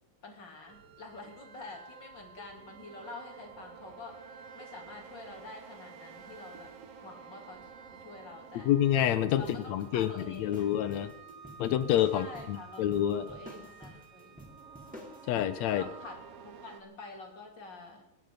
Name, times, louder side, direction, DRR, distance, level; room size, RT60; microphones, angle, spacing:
voice 1, 0.2-4.2 4.5-6.7 7.0-8.8 9.4-10.7 12.1-14.5 15.7-16.2 16.4-18.0, left 3 dB, 35° left, 1 dB, 3.7 m, -47 dB
sound 1, 0.7-16.8, right 6 dB, 60° right, 1.9 m, -51 dB
voice 2, 8.7-9.4 9.7-11.1 11.6-13.3 15.3-15.8, left 11 dB, 75° left, 13 dB, 1.8 m, -28 dB
sound 2, 9.4-15.2, equal, ahead, 3.3 m, -50 dB
24.5 x 11.0 x 5.1 m, 0.82 s
omnidirectional pair, 3.7 m